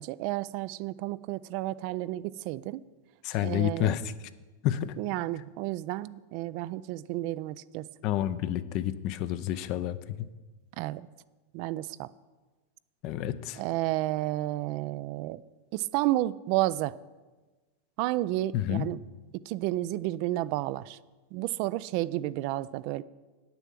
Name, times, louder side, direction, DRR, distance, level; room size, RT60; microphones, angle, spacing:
voice 1, 0.0-2.8 3.4-3.9 5.0-7.9 10.8-11.1 11.5-12.1 13.6-15.4 15.7-17.0 18.0-19.0 19.5-21.0 21.3-23.0, right 16 dB, 55° right, 17 dB, 0.3 m, -31 dB
voice 2, 3.2-4.0 4.6-4.9 8.0-10.0 13.0-13.6 18.5-18.9, left 12 dB, 50° left, 13 dB, 0.6 m, -29 dB
9.2 x 6.9 x 7.4 m, 1.2 s
hypercardioid pair, 100°, 0 cm